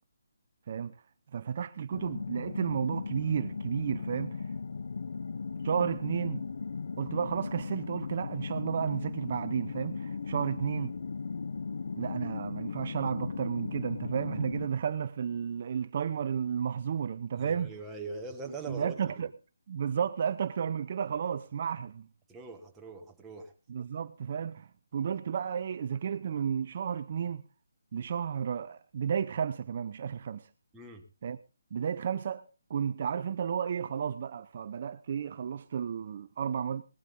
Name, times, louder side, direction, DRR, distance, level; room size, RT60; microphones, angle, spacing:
voice 1, 1.3-4.5 5.6-6.4 7.0-10.9 11.9-17.7 18.7-19.3 19.7-22.1 23.7-27.4 27.9-30.5 31.2-31.4 31.7-36.8, right 7 dB, 45° right, 0.7 m, -32 dB
sound 1, 1.9-14.7, left 5 dB, 65° left, 0.6 m, -37 dB
voice 2, 17.3-19.1 22.3-23.5 30.7-31.1, right 3 dB, 10° right, 1.6 m, -42 dB
18.5 x 12.0 x 3.7 m
hypercardioid pair, 160°, 0 cm